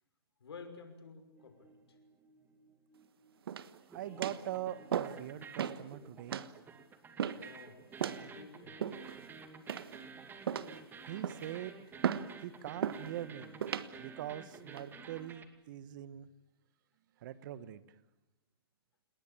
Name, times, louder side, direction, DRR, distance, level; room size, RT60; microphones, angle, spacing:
voice 1, 0.4-2.0 7.3-7.8 8.2-8.9, left 5 dB, 75° left, 7 dB, 5.8 m, -52 dB
sound 1, 1.4-3.6 3.8-15.4, right 5 dB, 15° right, 2.5 m, -52 dB
sound 2, 3.5-3.8 4.2-4.5 4.9-5.2 5.6-5.8 6.3-6.5 7.2-7.5 8.0-8.2 8.8-9.2 9.7-10.1 10.5-10.8 11.2-11.5 12.0-12.3 12.8-13.1 13.6-13.9 14.5-14.8, right 9 dB, 65° right, 1.4 m, -36 dB
voice 2, 3.9-6.4 11.1-11.7 12.4-13.6 14.0-16.3 17.2-17.8, right 12 dB, 50° right, 15 dB, 1.5 m, -42 dB
29.0 x 20.0 x 8.6 m, 0.98 s
hypercardioid pair, 125°, 13 cm